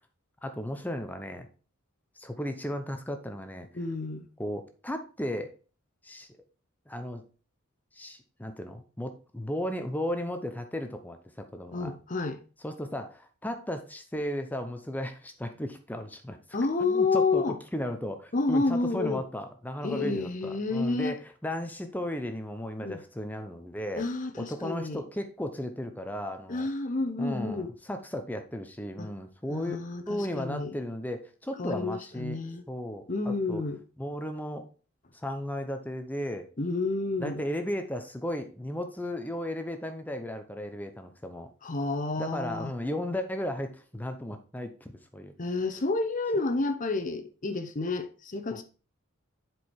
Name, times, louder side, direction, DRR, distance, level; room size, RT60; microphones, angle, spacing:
voice 1, 0.4-1.5 2.2-3.7 4.4-5.5 6.0-6.3 6.9-7.2 7.9-11.9 12.6-16.4 16.8-24.0 24.4-26.7 27.2-29.8 30.1-32.4 32.7-33.6 34.0-34.7 35.1-36.5 37.2-41.5 42.2-45.3 46.3-46.4 48.5-48.6, left 1 dB, 10° left, 0.7 m, -35 dB
voice 2, 3.7-4.3 11.7-12.4 16.5-17.6 18.3-19.2 19.8-21.2 22.8-23.0 24.0-25.0 26.5-27.7 29.0-29.1 29.5-30.7 31.6-32.6 33.1-33.8 36.6-37.4 41.6-42.7 45.4-48.6, left 3 dB, 40° left, 0.8 m, -30 dB
7.8 x 4.7 x 4.3 m
head